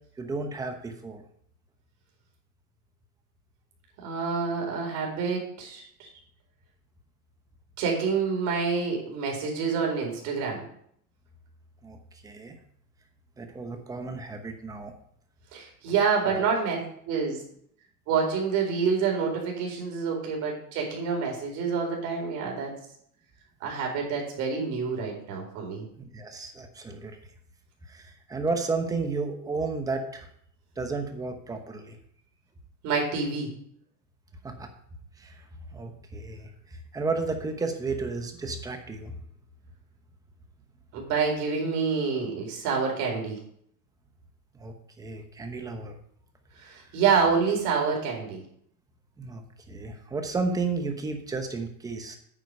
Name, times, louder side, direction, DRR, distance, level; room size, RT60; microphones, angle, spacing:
voice 1, 0.2-1.2 11.8-12.0 12.2-12.6 13.4-14.9 16.3-16.4 26.0-27.2 27.9-30.3 30.8-32.0 34.4-34.7 35.2-35.4 35.7-39.2 44.5-46.0 46.6-46.8 49.2-52.2, right 3 dB, 10° right, 5 dB, 0.9 m, -33 dB
voice 2, 4.0-6.1 7.8-10.7 15.5-16.8 17.1-17.4 18.1-22.7 23.6-25.8 32.8-33.5 40.9-43.4 46.6-48.4, right 5 dB, 40° right, 0 dB, 4.2 m, -27 dB
9.2 x 8.1 x 5.4 m, 0.66 s
supercardioid pair, 160°, 45 cm